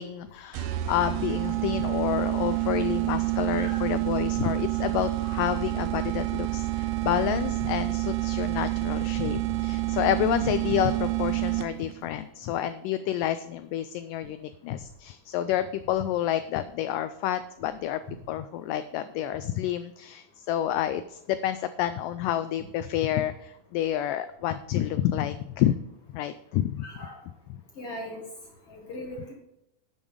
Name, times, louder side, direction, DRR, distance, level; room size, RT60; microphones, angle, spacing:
voice 1, 0.0-18.0 18.3-25.8 26.1-26.9 27.5-27.6, left 11 dB, 90° left, 12 dB, 1.9 m, -29 dB
sound 1, 0.5-12.0, right 17 dB, 80° right, 2.1 m, -28 dB
voice 2, 3.5-3.9 26.8-27.2 27.8-28.2 28.7-29.3, equal, 55° left, 0 dB, 1.7 m, -39 dB
11.0 x 7.2 x 5.0 m, 0.84 s
omnidirectional pair, 4.3 m